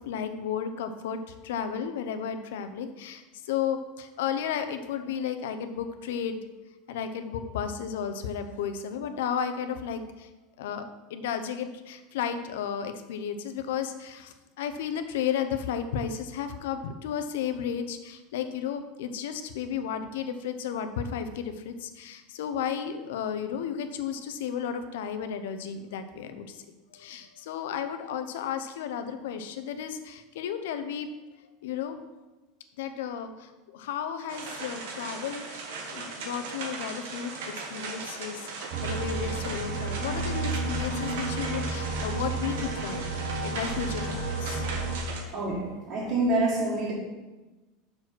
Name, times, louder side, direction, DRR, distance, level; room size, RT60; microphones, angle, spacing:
voice 1, 0.0-10.3 10.6-26.6 26.9-31.1 31.6-32.0 32.8-45.4, left 8 dB, 85° left, 9 dB, 0.7 m, -33 dB
sound 1, 34.3-45.2, right 4 dB, 85° right, 1.4 m, -38 dB
sound 2, 38.7-45.0, right 2 dB, 65° right, 1.4 m, -32 dB
voice 2, 45.3-46.9, right 2 dB, 45° right, -7 dB, 2.0 m, -27 dB
6.2 x 4.9 x 6.0 m, 1.1 s
supercardioid pair, 155°, 0 cm